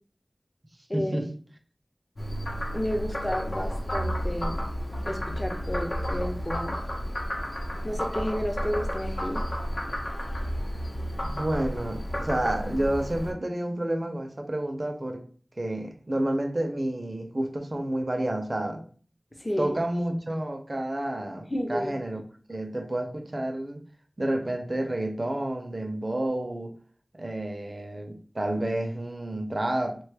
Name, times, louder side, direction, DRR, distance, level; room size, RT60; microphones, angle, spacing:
voice 1, 0.9-1.3 11.2-15.2 15.6-18.8 19.6-22.2 22.5-23.8 24.2-26.7 27.1-30.0, right 1 dB, 50° right, 0.5 m, -30 dB
Frog, 2.2-13.3, equal, 65° left, 0.8 m, -32 dB
voice 2, 2.7-4.6 5.1-6.8 7.8-9.4 19.4-19.8 21.5-21.9, equal, 30° left, 0.7 m, -31 dB
2.9 x 2.2 x 3.2 m
wide cardioid pair, 40°, 0 cm